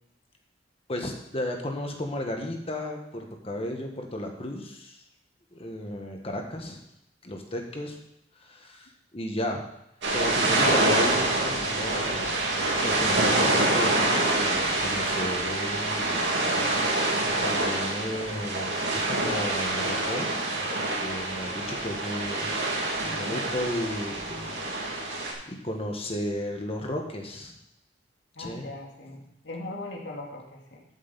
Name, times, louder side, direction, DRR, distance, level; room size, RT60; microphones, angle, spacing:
voice 1, 0.9-5.0 5.5-6.8 7.2-8.0 8.4-9.6 10.1-12.4 12.8-16.4 17.4-20.3 21.0-22.6 23.0-27.5 28.4-28.7, left 1 dB, 30° left, 3 dB, 1.6 m, -34 dB
sound 1, 10.0-25.3, right 2 dB, 75° right, 2.5 m, -26 dB
voice 2, 23.0-23.4 28.4-30.8, left 2 dB, 70° left, -1 dB, 2.0 m, -40 dB
13.0 x 7.3 x 4.2 m, 0.83 s
head